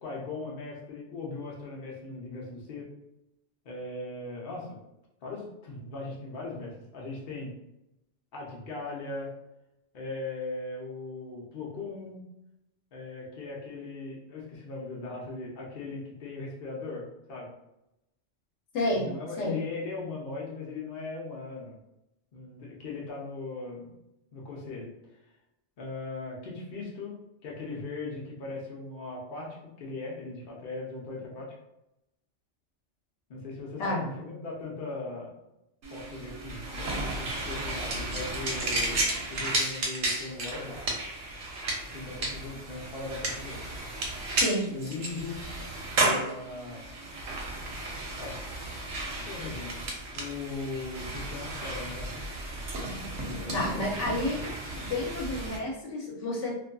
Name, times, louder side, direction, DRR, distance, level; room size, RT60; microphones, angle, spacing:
voice 1, 0.0-2.9 3.6-4.8 5.2-7.5 8.3-9.3 9.9-12.2 12.9-17.5 18.9-21.8 22.3-23.9 24.3-24.9 25.8-31.5 33.3-35.3 35.9-39.0 39.3-40.8 41.9-43.6 44.7-45.5 45.9-46.9 48.2-48.4 49.1-49.9 50.1-52.2 53.2-53.8, left 3 dB, 50° left, -3 dB, 0.7 m, -39 dB
voice 2, 18.7-19.1 19.4-19.6 33.8-34.1 44.4-44.7 53.5-54.4 54.7-56.5, left 1 dB, 75° left, -2 dB, 1.0 m, -30 dB
sound 1, 35.8-55.6, right 2 dB, 70° right, 1.0 m, -33 dB
2.5 x 2.5 x 2.2 m, 0.87 s
omnidirectional pair, 1.2 m